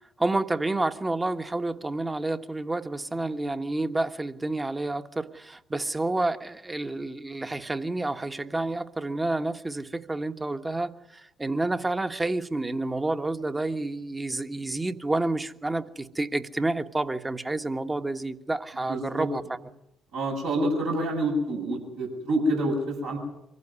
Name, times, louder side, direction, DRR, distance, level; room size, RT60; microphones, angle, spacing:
voice 1, 0.2-19.6, right 2 dB, 20° right, 1.4 m, -29 dB
voice 2, 18.9-19.3 20.1-23.2, right 1 dB, 75° right, 7.9 m, -27 dB
24.5 x 15.5 x 9.7 m
hypercardioid pair, 45°, 0 cm